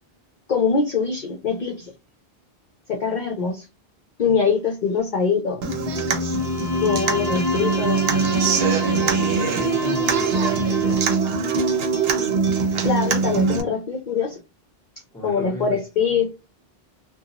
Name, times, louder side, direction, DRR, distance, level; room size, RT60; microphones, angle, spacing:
voice 1, 0.5-1.9 2.9-3.7 4.2-5.7 6.8-8.0 12.8-14.4 15.2-16.3, left 5 dB, 55° left, 0.6 m, -23 dB
Human voice / Acoustic guitar, 5.6-13.6, right 4 dB, 75° right, 0.9 m, -22 dB
Bowed string instrument, 6.3-11.2, equal, 15° right, 0.9 m, -31 dB
voice 2, 9.6-11.0 15.1-15.8, equal, 5° left, 1.1 m, -33 dB
2.6 x 2.2 x 2.7 m
omnidirectional pair, 1.0 m